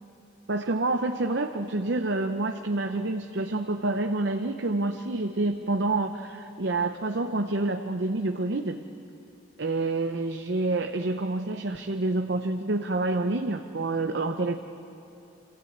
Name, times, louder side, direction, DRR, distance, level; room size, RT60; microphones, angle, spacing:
voice 1, 0.5-8.8 9.6-14.6, right 2 dB, 65° right, 5 dB, 0.8 m, -28 dB
26.0 x 16.0 x 8.7 m, 2.8 s
head